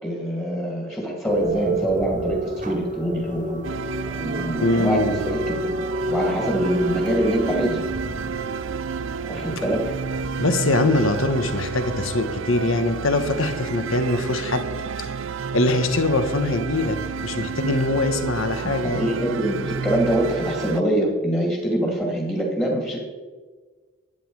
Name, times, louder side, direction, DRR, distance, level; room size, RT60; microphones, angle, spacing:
voice 1, 0.0-3.6 4.1-5.7 6.1-7.8 9.2-9.8 18.6-23.0, right 1 dB, 10° left, 0 dB, 2.1 m, -24 dB
sound 1, 1.3-10.4, right 1 dB, 35° right, 1.3 m, -30 dB
sound 2, 3.6-20.8, right 5 dB, 65° right, 0.5 m, -31 dB
voice 2, 4.6-5.2 10.4-14.7 15.0-15.1 15.5-19.2, left 2 dB, 75° left, 9 dB, 1.2 m, -22 dB
12.5 x 9.3 x 4.7 m, 1.4 s
head